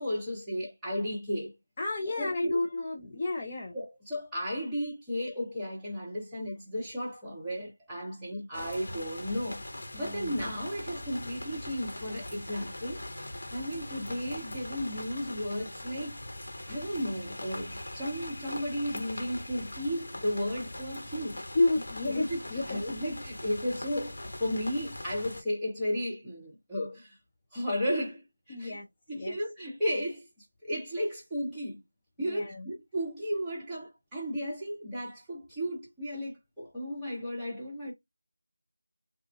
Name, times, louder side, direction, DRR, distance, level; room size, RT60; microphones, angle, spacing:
voice 1, 0.0-1.6 2.2-2.6 3.7-9.6 10.0-16.1 16.7-21.4 22.1-27.2 27.5-28.8 29.1-30.3 30.6-31.8 32.2-37.9, equal, 5° right, 1.5 m, -34 dB
voice 2, 1.8-3.7 9.9-10.4 21.5-22.6 28.5-28.9 29.1-29.4 32.2-32.7, left 2 dB, 20° left, 0.6 m, -31 dB
sound 1, 8.5-25.4, left 1 dB, 50° left, 1.7 m, -41 dB
6.3 x 2.8 x 2.3 m
figure-of-eight pair, 170°, 0 cm